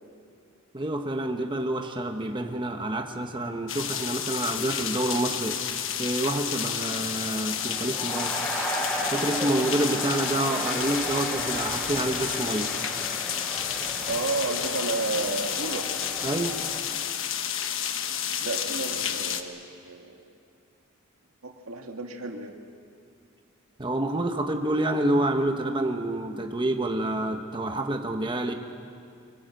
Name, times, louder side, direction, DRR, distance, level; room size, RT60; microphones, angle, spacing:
voice 1, 0.7-5.6 6.0-8.4 9.0-12.7 16.2-16.6 23.8-28.5, right 1 dB, 25° right, 4 dB, 1.2 m, -28 dB
sound 1, 3.7-19.4, left 9 dB, 65° left, 1.2 m, -31 dB
sound 2, 6.8-16.8, equal, 5° left, 5.0 m, -35 dB
voice 2, 13.8-15.9 18.4-20.3 21.4-22.5, right 3 dB, 85° right, 3 dB, 2.1 m, -32 dB
25.0 x 21.0 x 7.8 m, 2.4 s
head